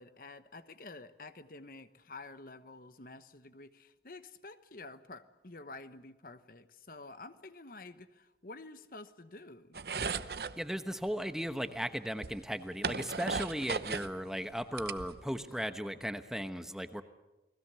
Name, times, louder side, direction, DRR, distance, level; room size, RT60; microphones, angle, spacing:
voice 1, 0.0-9.8, left 3 dB, 50° left, 11 dB, 1.1 m, -50 dB
sound 1, 9.7-10.6 11.7-11.8 12.2-14.1 14.5-15.5, right 5 dB, 60° right, 0.8 m, -36 dB
voice 2, 10.6-17.0, equal, 5° right, 8 dB, 1.0 m, -36 dB
29.5 x 20.5 x 6.9 m, 1.0 s
head